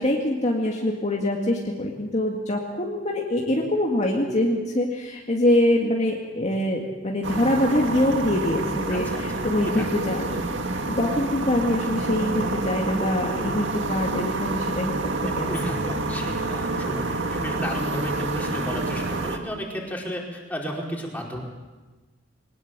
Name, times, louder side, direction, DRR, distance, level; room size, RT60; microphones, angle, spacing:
voice 1, 0.0-10.3 11.0-15.5 15.8-16.0, left 1 dB, 35° left, -1 dB, 2.1 m, -24 dB
sound 1, 7.2-19.4, right 2 dB, 75° right, 2.0 m, -28 dB
voice 2, 8.9-10.0 15.2-21.4, equal, 10° left, -2 dB, 4.7 m, -33 dB
22.0 x 20.0 x 7.5 m, 1.2 s
head